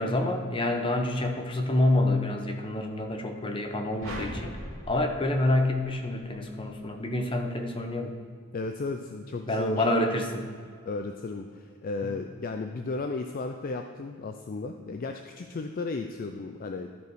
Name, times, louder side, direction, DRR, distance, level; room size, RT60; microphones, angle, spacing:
voice 1, 0.0-4.6 4.9-8.1 9.5-10.4, left 1 dB, 25° left, 4 dB, 0.8 m, -27 dB
sound 1, 4.0-6.4, equal, 65° right, 2.2 m, -40 dB
voice 2, 8.5-9.8 10.9-16.9, left 3 dB, 40° left, 5 dB, 0.4 m, -34 dB
13.0 x 5.0 x 4.7 m, 2.1 s
head